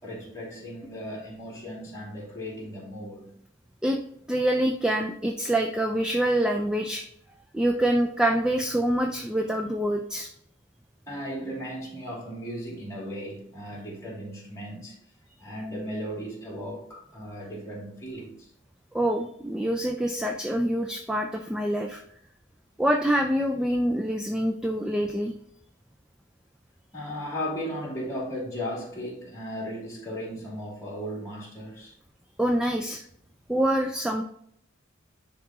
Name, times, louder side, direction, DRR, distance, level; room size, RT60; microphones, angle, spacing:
voice 1, 0.0-3.3 11.1-14.9 15.4-18.5 26.9-31.9, equal, 15° left, 2.6 m, -36 dB
voice 2, 4.3-7.0 7.5-10.3 18.9-22.0 22.8-25.3 32.4-33.0 33.5-34.2, right 1 dB, 5° right, 0.4 m, -25 dB
10.5 x 3.6 x 2.9 m
head